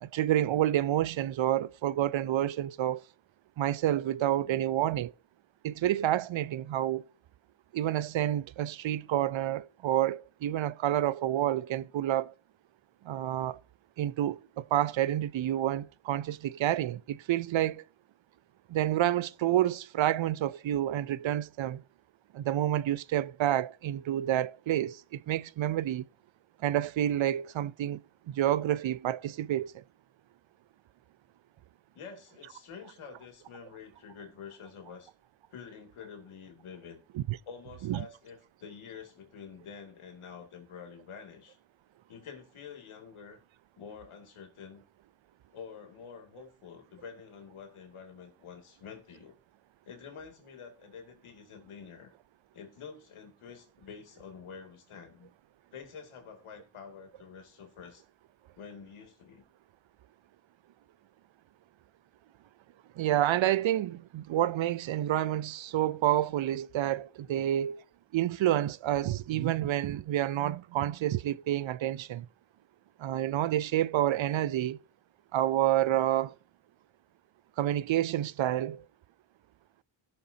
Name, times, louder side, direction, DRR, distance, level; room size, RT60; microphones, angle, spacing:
voice 1, 0.0-3.0 3.6-5.1 5.6-7.0 7.7-12.3 13.1-13.6 14.0-17.8 18.7-21.8 22.3-26.0 26.6-28.0 28.4-29.7 37.2-37.4 37.9-38.0 63.0-67.8 68.1-72.2 73.0-74.8 75.3-76.3 77.6-78.8, right 12 dB, 70° right, 0.6 m, -29 dB
voice 2, 4.4-4.7 31.9-35.1 35.5-37.0 37.5-41.6 42.1-43.4 43.8-44.8 45.5-49.3 49.9-52.1 52.5-55.3 55.7-58.0 58.6-59.4 67.2-67.4, left 6 dB, 90° left, 2.5 m, -48 dB
17.0 x 6.7 x 2.8 m
cardioid pair, 55°, 48 cm